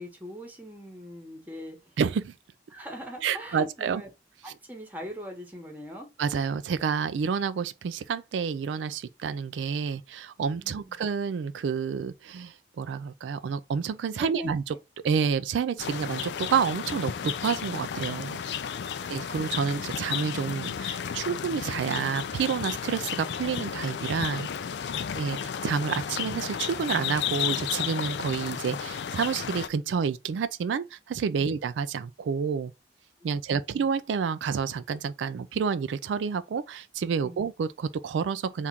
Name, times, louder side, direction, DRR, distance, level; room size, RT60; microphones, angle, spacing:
voice 1, 0.0-1.9 2.7-4.1 4.4-6.1 10.6-11.0 14.1-14.8 18.4-18.6 31.4-31.5 33.2-33.3 37.2-37.4, left 1 dB, 10° right, 1.1 m, -41 dB
voice 2, 2.0-2.3 3.2-4.0 6.2-14.6 15.0-18.4 19.1-24.5 25.1-32.7 33.2-38.7, right 6 dB, 85° right, 0.3 m, -29 dB
sound 1, 15.8-29.7, left 8 dB, 70° left, 0.4 m, -33 dB
3.6 x 2.4 x 4.2 m
head